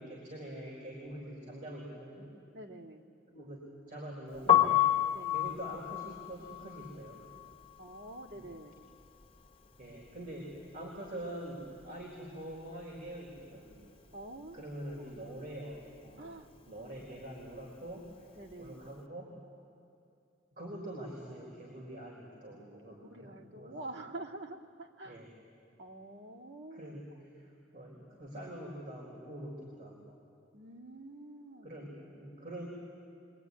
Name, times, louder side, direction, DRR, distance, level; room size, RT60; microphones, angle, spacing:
voice 1, 0.0-2.3 3.3-4.9 5.3-7.2 8.3-8.5 9.8-13.8 14.5-16.3 16.7-18.3 18.6-19.3 20.5-23.8 25.0-25.3 26.7-30.2 31.6-32.7, right 1 dB, 45° right, -2 dB, 4.4 m, -45 dB
voice 2, 2.5-3.0 5.1-5.4 7.8-8.7 14.1-14.6 15.0-15.3 16.2-16.5 18.4-18.9 23.1-25.3 25.8-27.0 30.5-31.7, right 2 dB, 75° right, 0 dB, 2.3 m, -47 dB
Piano, 4.4-10.3 10.6-12.2 12.4-18.9, left 11 dB, 35° left, 1.6 m, -32 dB
24.5 x 23.0 x 9.7 m, 2.5 s
head